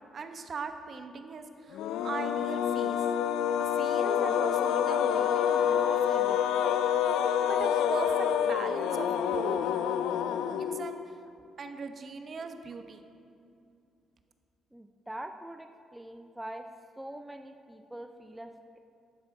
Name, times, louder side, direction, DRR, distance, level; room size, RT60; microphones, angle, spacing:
voice 1, 0.1-3.0 3.6-6.4 7.0-9.6 10.6-11.2 11.6-13.0, right 4 dB, 45° right, 7 dB, 0.8 m, -40 dB
sound 1, 1.7-11.1, left 9 dB, 90° left, 0.4 m, -27 dB
voice 2, 14.7-16.7 17.0-18.8, right 1 dB, 5° right, 6 dB, 0.5 m, -43 dB
11.5 x 7.4 x 4.8 m, 2.5 s
cardioid pair, 90°, 0 cm